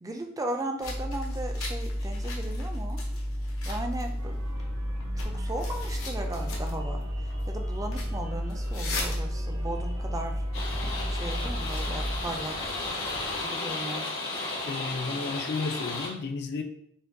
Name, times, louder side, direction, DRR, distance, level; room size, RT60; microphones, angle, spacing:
voice 1, 0.0-3.0 3.7-4.4 5.2-7.0 7.5-10.3 11.1-12.6 13.4-14.1, right 1 dB, 15° right, 4 dB, 0.4 m, -36 dB
sound 1, 0.8-12.2, equal, 85° left, 0.8 m, -32 dB
sound 2, 4.2-13.4, right 1 dB, 70° right, 0.7 m, -43 dB
sound 3, 10.5-16.1, left 2 dB, 70° left, 1.5 m, -34 dB
voice 2, 14.7-16.6, left 4 dB, 50° left, 6 dB, 0.4 m, -32 dB
5.7 x 2.2 x 2.6 m, 0.72 s
head